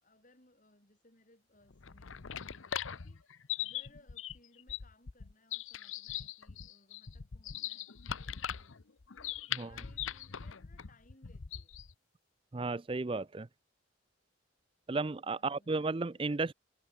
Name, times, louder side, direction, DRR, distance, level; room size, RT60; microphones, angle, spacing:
voice 1, 0.0-8.8 9.2-11.8 15.2-16.4, left 2 dB, 40° left, 5.6 m, -65 dB
sound 1, 1.7-11.9, left 9 dB, 75° left, 0.8 m, -41 dB
voice 2, 12.5-13.5 14.9-16.5, right 3 dB, 25° right, 0.4 m, -34 dB
head